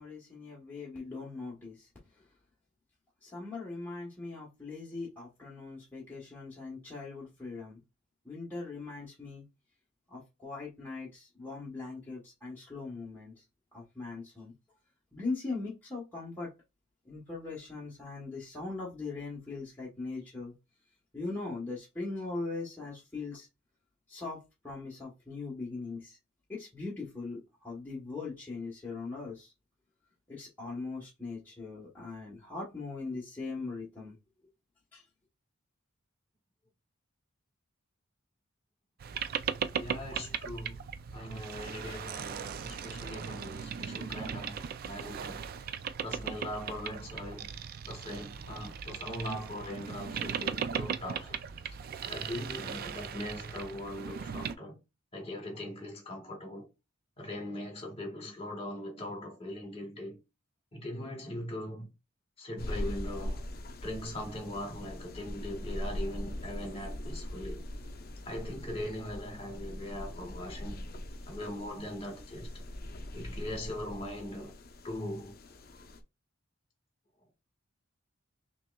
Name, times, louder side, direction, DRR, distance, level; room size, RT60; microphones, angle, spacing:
voice 1, 0.0-1.9 3.2-7.8 8.2-9.4 10.1-13.4 13.7-14.5 15.1-16.5 17.1-20.5 21.1-23.5 24.1-24.4 24.6-26.2 26.5-29.5 30.3-34.1 34.9-35.0, left 3 dB, 10° left, 1.2 m, -40 dB
Boat Water vehicle, 39.0-54.6, right 7 dB, 45° right, 0.3 m, -38 dB
voice 2, 39.7-40.8 41.1-44.5 44.9-45.4 46.0-47.5 47.9-51.4 52.0-54.7 55.1-56.7 57.2-60.2 60.7-61.9 62.4-63.4 63.8-67.6 68.2-70.8 71.3-72.5 73.1-74.5 74.8-75.3, left 1 dB, 30° left, 1.6 m, -40 dB
sound 1, 62.6-76.0, left 1 dB, 45° left, 0.6 m, -41 dB
5.8 x 3.0 x 2.3 m
head